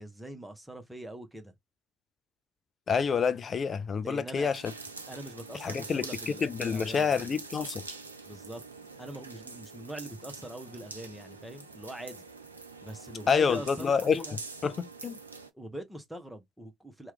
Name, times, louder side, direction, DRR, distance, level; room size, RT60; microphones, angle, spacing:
voice 1, 0.0-1.5 4.0-4.5 5.1-7.1 8.3-8.6 9.0-12.2 12.8-14.4 15.5-17.1, right 1 dB, 5° right, 0.9 m, -43 dB
voice 2, 2.9-4.6 5.6-7.8 13.3-14.2 14.6-15.2, left 6 dB, 35° left, 0.5 m, -28 dB
sound 1, 4.5-15.5, right 3 dB, 90° right, 0.4 m, -45 dB
3.0 x 2.3 x 3.4 m
figure-of-eight pair, 55°, 0 cm